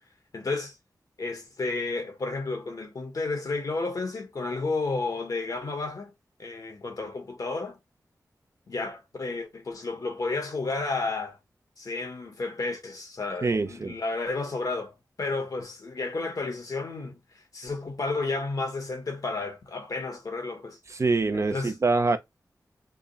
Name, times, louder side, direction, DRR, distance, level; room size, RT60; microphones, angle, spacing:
voice 1, 0.3-0.7 1.2-6.1 6.4-7.8 8.7-11.4 11.8-17.2 17.5-20.8 21.3-21.7, left 3 dB, 60° left, 1.3 m, -32 dB
voice 2, 13.4-14.0 21.0-22.2, right 3 dB, 45° right, 0.6 m, -24 dB
3.5 x 2.1 x 3.9 m
wide cardioid pair, 65°, 7 cm